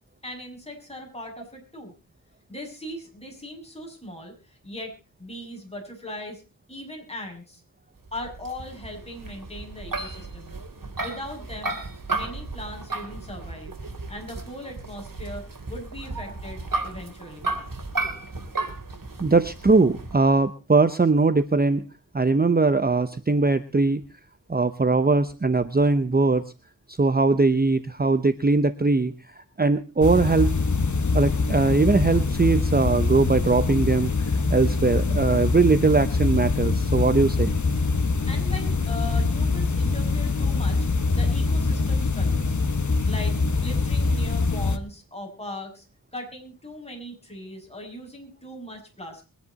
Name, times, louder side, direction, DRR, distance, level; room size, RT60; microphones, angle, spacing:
voice 1, 0.2-1.9 2.5-4.9 5.2-6.4 6.7-7.6 8.1-10.5 11.0-11.8 12.1-13.7 14.1-17.5 38.3-40.9 41.1-42.6 43.1-45.9 46.1-49.3, left 1 dB, 15° left, 1 dB, 6.9 m, -39 dB
sound 1, 8.1-20.2, right 3 dB, 70° right, 3.5 m, -34 dB
voice 2, 19.2-21.8 22.1-24.0 24.5-26.4 26.9-30.6 31.1-37.5, right 3 dB, 25° right, 11 dB, 0.8 m, -21 dB
sound 2, 30.0-44.8, left 3 dB, 55° left, 1.4 m, -24 dB
23.0 x 10.5 x 4.1 m, 0.34 s
wide cardioid pair, 65°, 35 cm